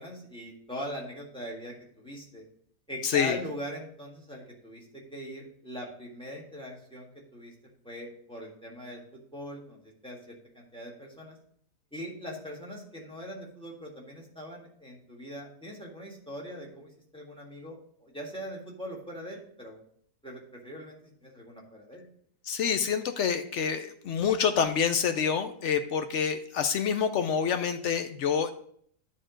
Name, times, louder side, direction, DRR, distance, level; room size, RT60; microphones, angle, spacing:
voice 1, 0.0-2.4 2.9-7.5 7.8-11.4 11.9-19.8 20.2-22.0, equal, 5° left, -2 dB, 1.6 m, -41 dB
voice 2, 3.0-3.4 22.5-28.5, left 7 dB, 65° left, 9 dB, 0.7 m, -27 dB
10.0 x 3.7 x 5.1 m, 0.63 s
omnidirectional pair, 1.7 m